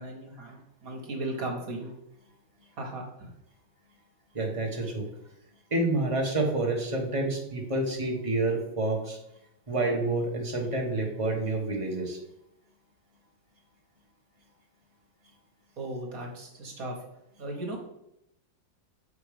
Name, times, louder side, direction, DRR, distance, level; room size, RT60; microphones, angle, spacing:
voice 1, 0.0-1.9 2.8-3.3 15.8-17.1 17.4-17.8, right 1 dB, 50° right, 1 dB, 1.7 m, -36 dB
voice 2, 4.3-5.1 5.7-9.2 9.7-12.2, right 2 dB, 20° right, -1 dB, 1.2 m, -28 dB
6.8 x 4.8 x 5.0 m, 0.84 s
omnidirectional pair, 2.0 m